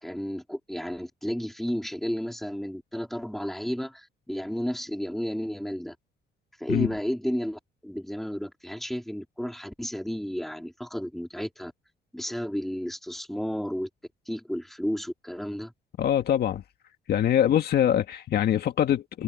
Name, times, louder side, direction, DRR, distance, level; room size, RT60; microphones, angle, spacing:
voice 1, 0.0-5.9 6.6-11.7 12.1-13.9 14.3-15.7, equal, ahead, 3.4 m, -32 dB
voice 2, 16.0-16.6 17.1-19.2, left 10 dB, 65° left, 1.9 m, -23 dB
cardioid pair, 110°, 18 cm